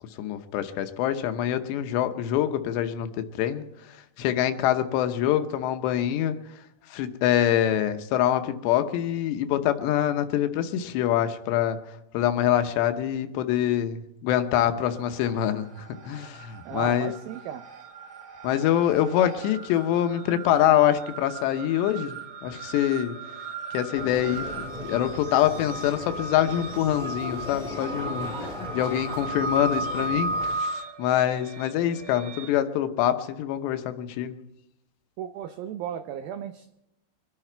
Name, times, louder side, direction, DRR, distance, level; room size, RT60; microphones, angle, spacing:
voice 1, 0.2-3.6 4.2-6.4 6.9-11.8 12.1-17.1 18.4-22.2 22.4-23.2 23.7-24.5 24.9-34.4, left 11 dB, 80° left, 9 dB, 3.0 m, -25 dB
sound 1, 15.0-15.6 15.9-32.5, right 3 dB, 65° right, 2.0 m, -36 dB
voice 2, 16.7-17.7 35.2-36.8, right 9 dB, 85° right, 8 dB, 2.0 m, -35 dB
sound 2, 23.9-30.6, left 3 dB, 20° left, 1.7 m, -38 dB
24.5 x 11.0 x 4.5 m, 0.89 s
omnidirectional pair, 5.1 m